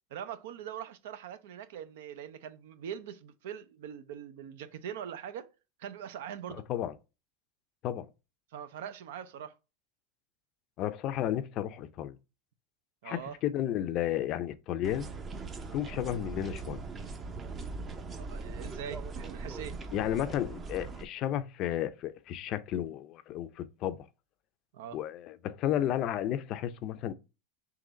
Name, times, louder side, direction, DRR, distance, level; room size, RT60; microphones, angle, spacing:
voice 1, 0.1-5.5 5.8-6.6 8.5-9.6 13.0-13.4 18.2-19.8 24.7-25.0, right 9 dB, 75° right, 0.5 m, -42 dB
voice 2, 6.5-6.9 7.8-8.1 10.8-12.2 13.0-15.1 15.7-16.8 19.9-24.0 24.9-27.1, left 11 dB, 50° left, 0.5 m, -33 dB
sound 1, 14.8-21.0, right 4 dB, 25° right, 0.6 m, -40 dB
3.8 x 2.9 x 4.0 m
hypercardioid pair, 110°, 0 cm